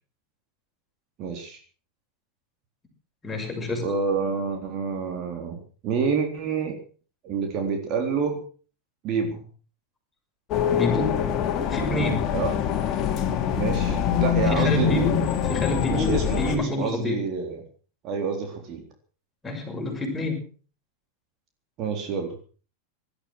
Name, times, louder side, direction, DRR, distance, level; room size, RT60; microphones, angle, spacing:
voice 1, 1.2-1.6 3.8-6.8 7.2-8.4 9.0-9.4 12.3-12.6 13.6-15.0 15.9-17.6 18.0-18.8 21.8-22.3, right 5 dB, 35° right, 3 dB, 3.9 m, -28 dB
voice 2, 3.2-3.8 10.6-11.1 11.7-12.2 14.4-17.2 19.4-20.4, left 2 dB, 15° left, 1 dB, 6.4 m, -28 dB
sound 1, 10.5-16.6, left 8 dB, 35° left, 2.6 m, -24 dB
18.5 x 12.5 x 6.2 m, 0.41 s
figure-of-eight pair, 90°, 0 cm